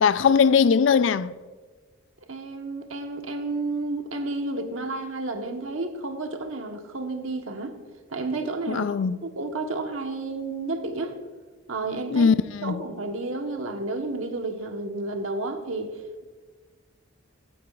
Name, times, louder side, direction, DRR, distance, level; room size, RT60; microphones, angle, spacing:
voice 1, 0.0-1.3 8.7-9.2 12.1-12.8, left 6 dB, 65° left, 0.4 m, -20 dB
voice 2, 2.3-7.8 8.1-11.2 11.7-12.3 12.6-16.2, right 2 dB, 80° right, 1.2 m, -31 dB
16.0 x 10.5 x 2.4 m
head